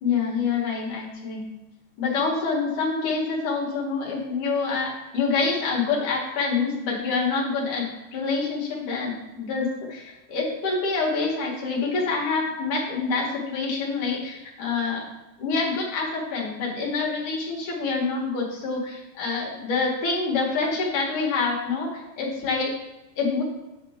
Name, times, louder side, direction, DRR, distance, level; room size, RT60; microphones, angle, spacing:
voice 1, 0.0-1.4 2.0-7.9 8.1-15.1 15.4-22.7 23.2-23.4, left 4 dB, 70° left, -2 dB, 3.2 m, -26 dB
9.2 x 6.8 x 3.7 m, 1.1 s
omnidirectional pair, 3.7 m